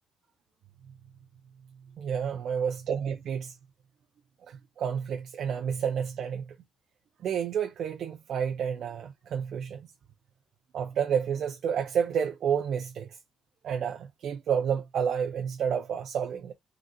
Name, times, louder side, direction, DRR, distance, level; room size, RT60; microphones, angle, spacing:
voice 1, 2.0-3.6 4.5-6.5 7.2-9.9 10.7-13.2 13.6-16.5, right 7 dB, 70° right, 0.5 m, -30 dB
3.8 x 2.4 x 4.2 m
cardioid pair, 90°, 0 cm